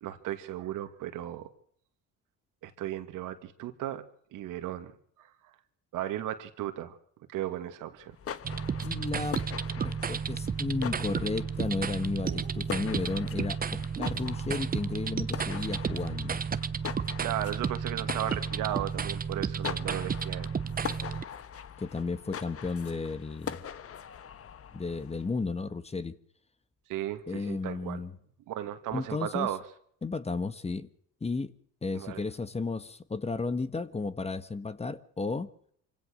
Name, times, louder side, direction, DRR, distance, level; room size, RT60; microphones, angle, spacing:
voice 1, 0.0-1.5 2.6-4.0 4.3-5.3 5.9-7.0 7.3-8.2 12.2-12.5 17.2-20.5 26.9-28.0 28.5-29.6 31.9-32.2, right 12 dB, 75° right, 2.3 m, -35 dB
sound 1, 8.0-25.3, left 8 dB, 45° left, 1.4 m, -43 dB
sound 2, 8.4-21.2, right 6 dB, 30° right, 0.9 m, -32 dB
voice 2, 8.8-9.4 9.8-16.4 21.8-23.6 24.7-26.1 27.3-28.1 28.9-29.5 30.0-30.9 31.2-31.5 31.8-35.5, left 3 dB, 20° left, 1.4 m, -33 dB
26.0 x 16.5 x 6.5 m
cardioid pair, 100°, 32 cm